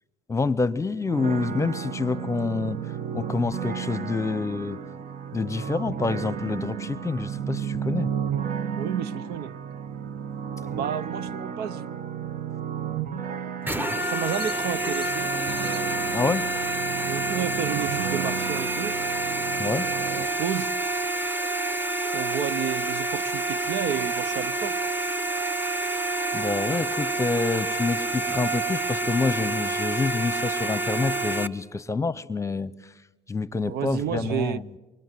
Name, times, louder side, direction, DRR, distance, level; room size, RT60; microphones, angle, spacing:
voice 1, 0.3-2.8 3.1-4.8 5.3-8.1 16.1-16.5 19.6-19.9 26.3-32.7 33.3-34.7, left 4 dB, 15° left, 17 dB, 0.9 m, -27 dB
sound 1, 1.1-20.3, right 8 dB, 55° right, 1.1 m, -33 dB
voice 2, 8.8-9.5 10.7-12.0 13.9-15.3 17.1-19.0 20.1-20.7 22.1-24.8 33.6-34.6, right 9 dB, 75° right, 17 dB, 0.8 m, -31 dB
sound 2, 13.6-31.5, right 2 dB, 10° right, 1.0 m, -28 dB
sound 3, 14.0-20.3, right 4 dB, 35° right, 1.3 m, -46 dB
25.5 x 23.0 x 7.7 m, 1.1 s
cardioid pair, 110°, 17 cm